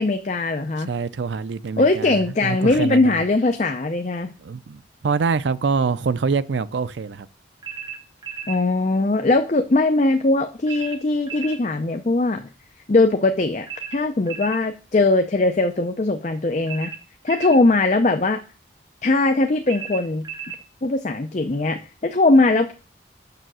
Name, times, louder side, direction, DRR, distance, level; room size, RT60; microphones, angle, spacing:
voice 1, 0.0-0.9 1.8-4.3 8.5-12.4 12.9-16.9 17.2-18.4 19.0-20.2 20.8-22.8, left 2 dB, 40° left, 0.5 m, -20 dB
voice 2, 0.8-2.2 2.4-3.2 4.4-7.3, right 5 dB, 80° right, 0.5 m, -25 dB
sound 1, 7.6-8.6 10.7-11.6 13.7-14.6 16.7-17.6 19.7-20.6, right 7 dB, 20° right, 0.9 m, -34 dB
6.8 x 6.4 x 6.2 m
head